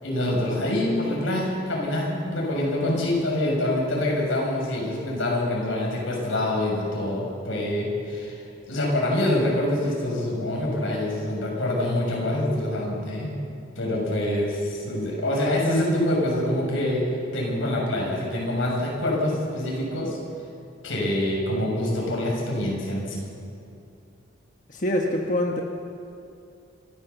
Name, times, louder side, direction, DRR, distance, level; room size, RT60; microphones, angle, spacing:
voice 1, 0.0-8.4 8.7-13.3 13.7-20.2 20.8-23.3, left 1 dB, 90° left, -2 dB, 6.7 m, -25 dB
voice 2, 24.7-25.6, left 1 dB, 40° left, 1 dB, 1.2 m, -24 dB
26.5 x 14.0 x 7.1 m, 2.7 s
head